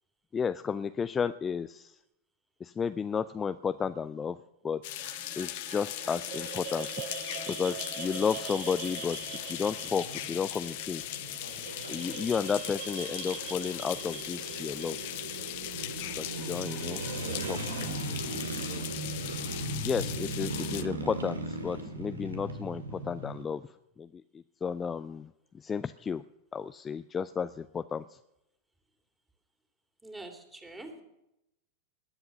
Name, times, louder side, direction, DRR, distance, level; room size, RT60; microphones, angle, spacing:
voice 1, 0.3-2.0 2.6-4.4 4.6-4.8 5.4-7.0 7.5-9.2 9.4-11.0 11.9-15.0 16.2-17.0 17.3-18.0 18.7-18.9 19.8-23.6 24.0-24.2 24.6-26.2 26.5-28.2, left 6 dB, 20° left, 12 dB, 0.4 m, -33 dB
sound 1, 4.8-20.8, left 17 dB, 50° left, 0.8 m, -39 dB
sound 2, 4.8-17.8, right 6 dB, 55° right, 4.4 m, -43 dB
sound 3, 8.2-23.4, right 2 dB, 75° right, 1.9 m, -39 dB
voice 2, 30.0-31.0, right 2 dB, 10° right, 5 dB, 2.7 m, -45 dB
20.5 x 7.9 x 7.0 m, 0.87 s
figure-of-eight pair, 90°, 0 cm